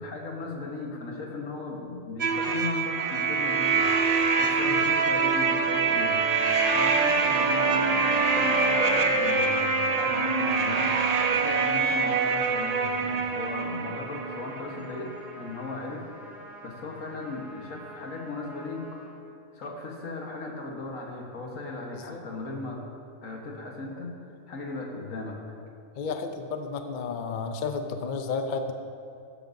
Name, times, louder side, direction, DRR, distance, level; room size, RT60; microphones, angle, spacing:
voice 1, 0.0-6.2 6.7-16.1 16.6-19.0 19.5-22.8 23.2-24.1 24.5-25.4, left 3 dB, 80° left, 0 dB, 1.7 m, -37 dB
sound 1, 2.2-14.9, right 4 dB, 55° right, 0.4 m, -24 dB
sound 2, 8.1-9.7, right 4 dB, 75° right, 1.1 m, -42 dB
Trumpet, 11.9-19.1, equal, ahead, 2.3 m, -45 dB
voice 2, 21.9-22.3 26.0-28.7, left 4 dB, 50° left, 6 dB, 0.6 m, -32 dB
12.5 x 10.0 x 2.7 m, 2.6 s
omnidirectional pair, 1.4 m